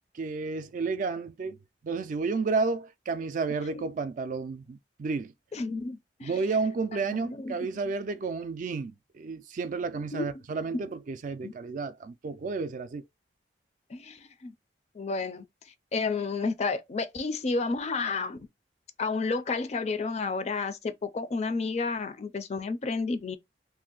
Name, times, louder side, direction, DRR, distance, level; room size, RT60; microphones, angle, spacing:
voice 1, 0.1-1.6 1.8-5.3 6.2-13.0, right 4 dB, 45° right, 0.3 m, -31 dB
voice 2, 5.5-6.3 6.9-7.7 10.1-10.3 10.7-10.8 11.4-11.5 13.9-14.5 14.9-15.5 15.9-18.4 19.0-23.4, left 4 dB, 40° left, 0.4 m, -31 dB
2.6 x 2.0 x 3.7 m
head